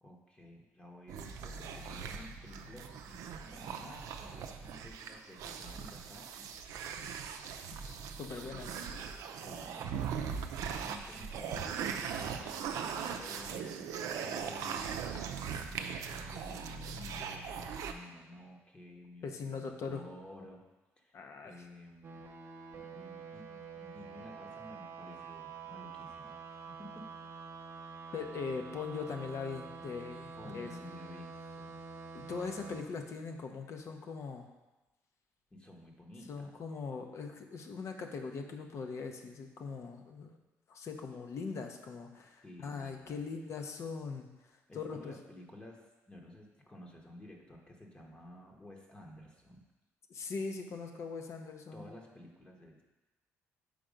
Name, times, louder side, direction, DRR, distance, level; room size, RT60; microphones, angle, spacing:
voice 1, 0.0-6.5 8.4-10.4 10.7-20.6 21.0-22.3 22.7-27.1 30.4-31.8 35.5-36.6 42.4-43.2 44.7-49.6 51.7-52.8, left 1 dB, 20° left, 0 dB, 0.9 m, -53 dB
sound 1, 1.1-17.9, right 7 dB, 80° right, 0.5 m, -40 dB
voice 2, 7.8-8.7 15.5-15.8 19.2-20.0 21.1-21.6 28.1-30.7 32.1-34.5 36.3-40.3 40.7-44.3 44.7-45.1 50.1-51.9, left 5 dB, 55° left, 4 dB, 0.7 m, -41 dB
sound 2, 22.0-32.8, right 4 dB, 50° right, 0.8 m, -47 dB
5.1 x 4.4 x 5.1 m, 1.1 s
cardioid pair, 85°, 6 cm